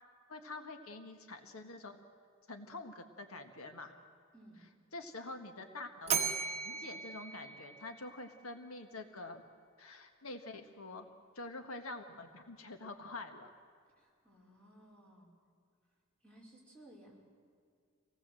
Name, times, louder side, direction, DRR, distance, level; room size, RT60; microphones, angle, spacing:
voice 1, 0.3-2.0 2.5-3.9 4.9-6.3 6.6-9.4 9.8-11.1 11.4-13.5, left 2 dB, 85° left, 6 dB, 1.6 m, -46 dB
voice 2, 4.3-4.6 14.0-15.3 16.2-17.2, right 1 dB, 5° left, -4 dB, 4.7 m, -58 dB
Bell, 6.1-8.4, right 6 dB, 30° right, 1.4 m, -37 dB
26.0 x 18.5 x 7.7 m, 2.2 s
head